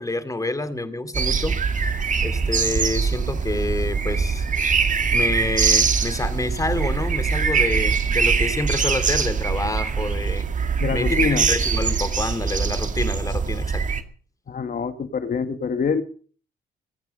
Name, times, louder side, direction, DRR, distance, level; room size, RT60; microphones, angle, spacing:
voice 1, 0.0-1.6 2.0-4.5 5.1-10.5 10.9-13.8, left 2 dB, 15° left, 11 dB, 2.6 m, -28 dB
sound 1, 1.1-14.0, right 5 dB, 40° right, 2.0 m, -22 dB
voice 2, 10.8-11.5 14.5-16.0, left 5 dB, 45° left, 10 dB, 1.8 m, -25 dB
22.5 x 9.5 x 5.4 m, 0.42 s
cardioid pair, 90°, 20 cm